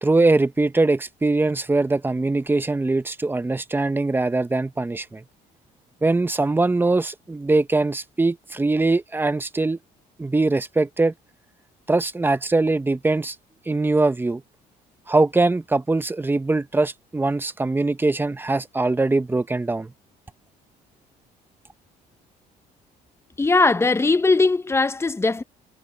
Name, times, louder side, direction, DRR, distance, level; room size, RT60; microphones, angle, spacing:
voice 1, 0.0-5.2 6.0-9.8 10.2-11.1 11.9-13.4 13.7-14.4 15.1-19.9, right 2 dB, 10° right, 0.9 m, -22 dB
voice 2, 23.4-25.4, left 3 dB, 15° left, 0.8 m, -19 dB
cardioid pair, 110°, 17 cm